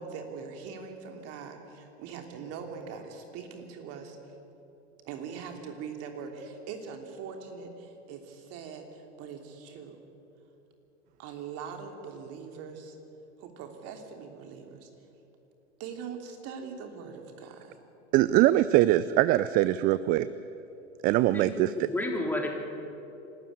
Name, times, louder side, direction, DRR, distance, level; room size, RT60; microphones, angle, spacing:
voice 1, 0.0-4.2 5.0-10.0 11.2-13.0 13.4-14.9 15.8-17.8, right 6 dB, 40° right, 4 dB, 3.2 m, -42 dB
voice 2, 18.1-20.3 21.0-21.9, right 15 dB, 25° right, 16 dB, 0.4 m, -22 dB
voice 3, 21.3-22.5, left 1 dB, 5° left, 1 dB, 3.3 m, -31 dB
27.0 x 12.5 x 9.6 m, 2.9 s
figure-of-eight pair, 95°, 36 cm